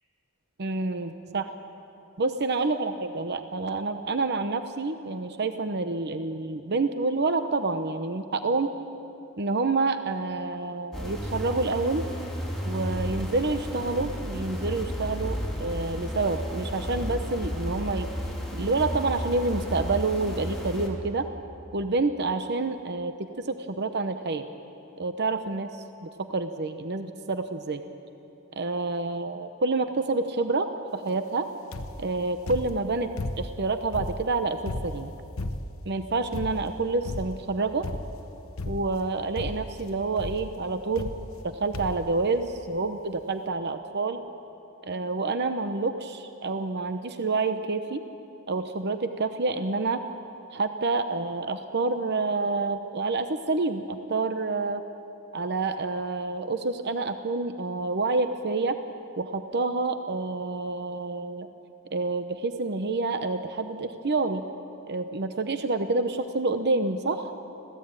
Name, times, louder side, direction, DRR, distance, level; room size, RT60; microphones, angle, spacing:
voice 1, 0.6-1.5 2.2-8.7 9.4-12.0 12.6-18.1 18.5-21.2 21.7-24.4 25.0-25.7 26.2-27.8 28.5-31.5 32.0-33.1 33.4-35.1 35.9-37.9 38.7-41.1 41.4-44.2 44.8-48.0 48.5-50.0 50.5-54.8 55.3-58.8 59.2-61.5 61.9-64.4 64.9-67.3, right 3 dB, 50° right, 8 dB, 0.9 m, -28 dB
sound 1, 10.9-20.9, equal, ahead, 3.7 m, -33 dB
sound 2, 31.7-32.1 32.5-33.6 33.9-35.9 36.3-36.8 37.0-37.5 37.8-38.2 38.6-39.1 39.4-39.8 40.2-40.5 41.0-41.5 41.7-42.1 42.8-42.9 43.1-43.2, left 1 dB, 70° left, 1.0 m, -34 dB
25.5 x 16.5 x 8.9 m, 3.0 s
head